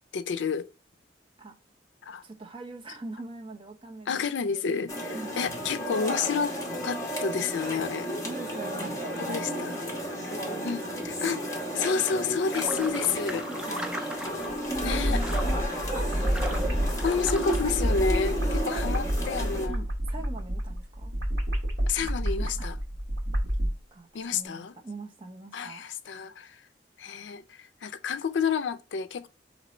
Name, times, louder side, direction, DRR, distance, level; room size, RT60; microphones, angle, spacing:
voice 1, 0.1-0.7 2.0-2.2 4.1-6.6 6.8-8.1 9.3-9.8 10.6-13.5 14.4-14.5 14.8-15.2 17.0-19.8 21.9-22.8 24.1-24.7 25.5-26.6 27.0-29.3, left 5 dB, 80° left, 0.4 m, -30 dB
voice 2, 2.2-4.6 5.1-5.4 8.2-11.8 13.5-14.0 14.7-16.8 18.7-18.8 19.7-21.2 22.6-22.7 23.9-25.8, right 2 dB, 30° right, 0.7 m, -42 dB
sound 1, 4.9-19.7, equal, 20° left, 1.2 m, -33 dB
sound 2, 12.5-17.6, right 1 dB, 5° right, 0.3 m, -40 dB
sound 3, 14.5-23.7, equal, 75° right, 1.0 m, -29 dB
4.0 x 3.0 x 4.2 m
head